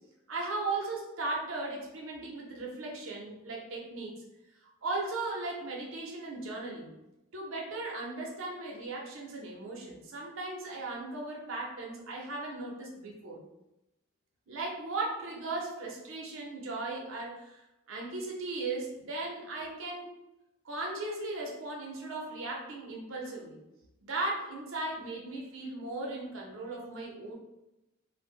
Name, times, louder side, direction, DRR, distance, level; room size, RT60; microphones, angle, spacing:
voice 1, 0.3-4.1 4.6-6.9 7.3-13.4 14.5-17.6 17.9-20.1 20.6-23.6 24.0-27.3, right 2 dB, 70° right, -1 dB, 0.6 m, -37 dB
2.1 x 2.0 x 3.5 m, 0.94 s
head